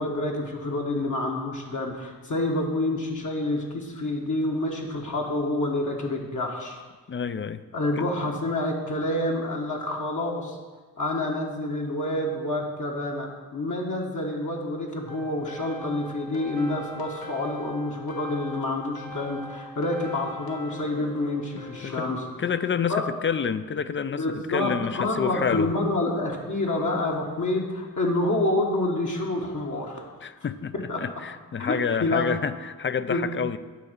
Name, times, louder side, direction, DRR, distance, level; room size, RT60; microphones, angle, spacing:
voice 1, 0.0-6.8 7.7-10.6 11.0-22.2 22.9-23.1 24.1-30.0 30.9-31.0 31.6-32.3 33.1-33.3, left 2 dB, 55° left, -1 dB, 1.3 m, -28 dB
voice 2, 7.1-7.6 8.0-8.1 21.6-25.7 30.2-33.6, left 6 dB, 35° left, 13 dB, 0.4 m, -29 dB
sound 1, 15.1-22.9, left 1 dB, 85° left, 1.0 m, -42 dB
9.4 x 3.6 x 6.6 m, 1.4 s
cardioid pair, 65°, 35 cm